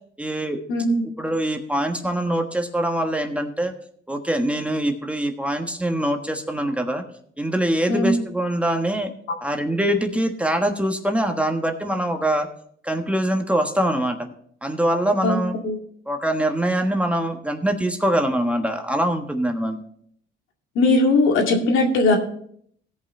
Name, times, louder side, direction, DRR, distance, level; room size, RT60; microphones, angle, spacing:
voice 1, 0.2-0.6 1.2-3.7 4.1-7.0 7.4-9.1 9.4-12.5 12.8-14.3 14.6-15.6 16.1-19.8, right 1 dB, 5° right, 4 dB, 1.3 m, -23 dB
voice 2, 0.7-1.0 7.9-8.1 15.2-15.4 15.6-15.8 20.8-22.2, left 2 dB, 80° left, 2 dB, 2.2 m, -19 dB
17.0 x 5.6 x 4.3 m, 0.63 s
cardioid pair, 90°, 20 cm